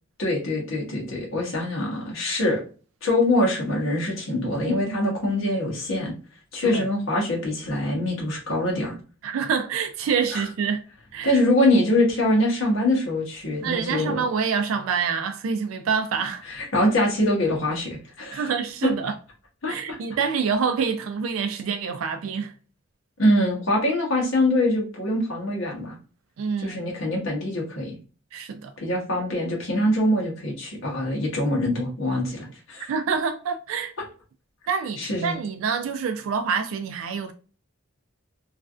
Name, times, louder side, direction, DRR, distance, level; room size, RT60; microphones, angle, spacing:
voice 1, 0.2-2.6 3.0-6.1 6.5-9.0 10.3-10.4 11.2-14.2 16.5-18.5 19.6-20.0 23.2-26.0 26.6-28.0 28.8-32.9 35.0-35.4, left 1 dB, 80° left, 1.0 m, -24 dB
voice 2, 9.2-10.8 11.1-11.4 13.6-16.4 18.3-19.1 19.7-22.5 26.4-26.8 28.3-28.7 32.9-33.9 34.7-37.3, right 6 dB, 85° right, 0.3 m, -26 dB
3.1 x 2.4 x 2.3 m
head